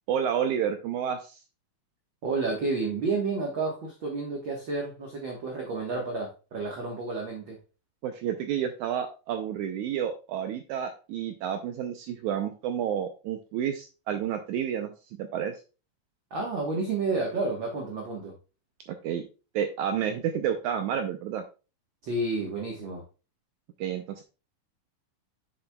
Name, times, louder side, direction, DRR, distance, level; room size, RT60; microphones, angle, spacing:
voice 1, 0.1-1.4 8.0-15.5 18.9-19.2 19.5-21.4 23.8-24.2, right 9 dB, 85° right, 6 dB, 1.7 m, -30 dB
voice 2, 2.2-7.6 16.3-18.3 22.0-23.0, right 3 dB, 65° right, 0 dB, 1.2 m, -30 dB
7.9 x 6.8 x 2.2 m, 0.32 s
omnidirectional pair, 4.1 m